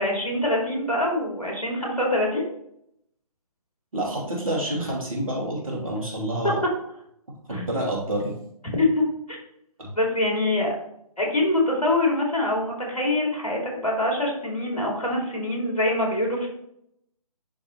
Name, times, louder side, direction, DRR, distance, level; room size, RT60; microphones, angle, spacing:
voice 1, 0.0-2.4 7.5-7.6 8.8-9.4 10.0-10.7 11.2-16.5, left 1 dB, 75° left, -2 dB, 2.7 m, -24 dB
voice 2, 3.9-6.5 7.5-8.3 9.8-9.9, right 1 dB, 60° right, -3 dB, 2.7 m, -28 dB
10.5 x 3.6 x 3.0 m, 0.74 s
figure-of-eight pair, 140°, 20 cm